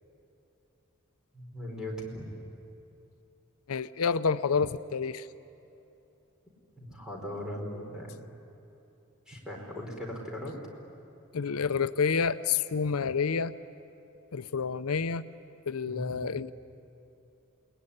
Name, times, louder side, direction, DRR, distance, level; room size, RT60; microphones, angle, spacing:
voice 1, 1.3-2.3 6.8-8.2 9.3-10.6 15.8-16.2, equal, 5° right, -1 dB, 4.7 m, -39 dB
voice 2, 3.7-5.3 11.3-13.6 14.3-15.3 15.7-16.5, left 5 dB, 85° left, 13 dB, 0.6 m, -29 dB
28.5 x 20.5 x 10.0 m, 2.9 s
head